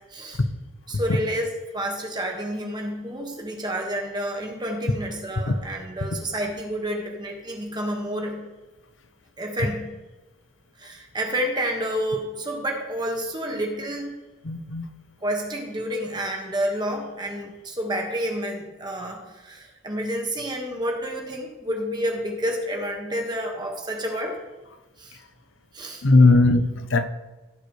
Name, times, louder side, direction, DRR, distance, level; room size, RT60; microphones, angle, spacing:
voice 1, 0.9-8.4 9.4-9.9 10.8-14.2 15.2-24.4 25.0-25.2 25.7-26.0, equal, 20° right, 1 dB, 1.6 m, -29 dB
voice 2, 14.4-14.9 26.0-27.0, left 3 dB, 75° left, 9 dB, 0.8 m, -18 dB
16.5 x 6.8 x 3.2 m, 1.1 s
head